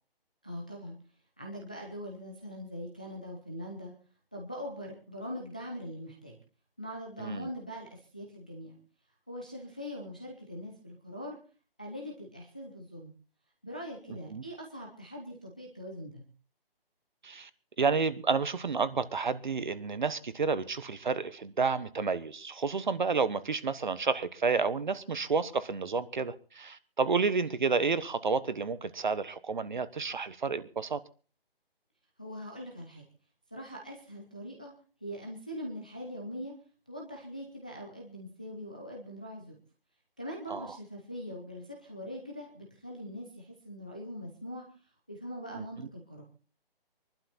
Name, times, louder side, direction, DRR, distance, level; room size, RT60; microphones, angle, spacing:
voice 1, 0.4-1.0 1.4-3.9 4.3-6.4 6.8-8.8 9.3-11.4 11.8-13.1 13.6-16.2 32.2-33.0 33.5-34.7 35.0-36.5 36.9-39.5 40.2-44.7 45.1-46.2, equal, 10° left, 0.6 m, -42 dB
voice 2, 7.2-7.5 14.1-14.4 17.2-17.5 17.8-31.0 40.5-40.7 45.5-45.9, right 4 dB, 50° right, 1.2 m, -30 dB
23.0 x 12.0 x 4.2 m
hypercardioid pair, 175°, 30 cm